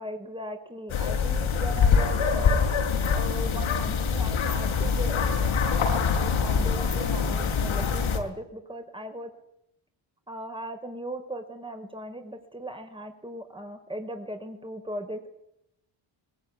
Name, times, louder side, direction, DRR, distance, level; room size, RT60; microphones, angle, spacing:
voice 1, 0.0-2.6 3.1-9.3 10.3-15.3, right 1 dB, 10° right, 5 dB, 5.0 m, -38 dB
sound 1, 0.9-8.2, left 6 dB, 75° left, 5.5 m, -24 dB
22.0 x 20.5 x 9.8 m, 0.82 s
cardioid pair, 80°, 49 cm